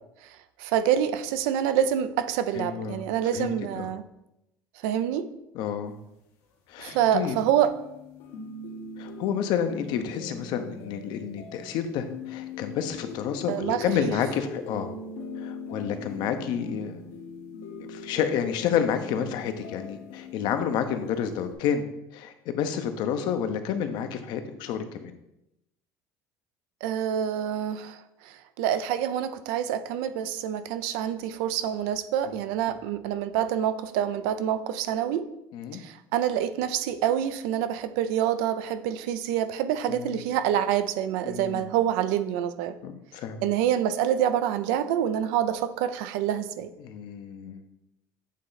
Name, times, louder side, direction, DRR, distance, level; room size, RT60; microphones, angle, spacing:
voice 1, 0.6-4.0 4.8-5.3 6.8-7.7 13.5-13.8 26.8-28.0 28.2-35.3 35.7-42.8 43.4-46.7, right 10 dB, 85° right, 12 dB, 0.4 m, -26 dB
voice 2, 2.6-3.0 3.3-3.9 5.5-6.0 6.7-7.4 9.0-14.9 15.4-17.0 17.8-21.9 22.1-25.1 35.5-35.8 39.9-40.2 41.2-41.7 42.8-43.5 46.8-47.6, left 8 dB, 65° left, 8 dB, 0.7 m, -30 dB
sound 1, 6.9-21.5, left 4 dB, 90° left, 1.3 m, -41 dB
8.2 x 3.2 x 3.9 m, 0.87 s
supercardioid pair, 110°, 8 cm